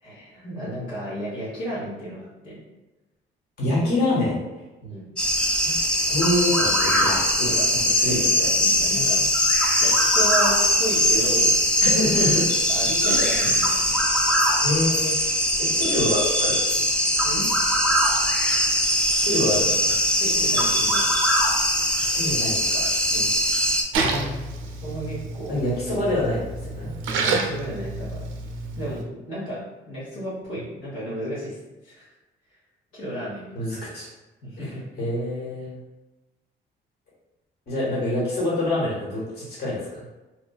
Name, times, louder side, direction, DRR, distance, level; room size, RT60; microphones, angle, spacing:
voice 1, 0.0-2.6 4.8-5.0 7.5-7.7 8.0-9.2 9.8-11.6 12.7-13.9 17.2-17.5 20.2-21.1 23.1-23.3 24.8-25.6 27.2-28.3 28.8-32.1 32.9-33.5 34.4-34.9, equal, 75° left, -9 dB, 1.3 m, -33 dB
voice 2, 3.6-4.4 5.6-5.7 6.1-7.5 8.0-8.5 11.8-12.4 13.1-13.2 14.6-15.2 15.6-16.5 19.1-19.9 22.0-22.8 23.9-24.5 25.5-26.9 33.5-34.1 34.6-34.7 35.0-35.8 37.7-39.9, left 1 dB, 55° left, -7 dB, 1.4 m, -26 dB
sound 1, 5.2-23.8, equal, 5° left, 0.4 m, -21 dB
Splash splatter, 23.9-29.0, right 3 dB, 85° right, 0.4 m, -29 dB
3.0 x 2.5 x 2.3 m, 1.1 s
cardioid pair, 90°, 20 cm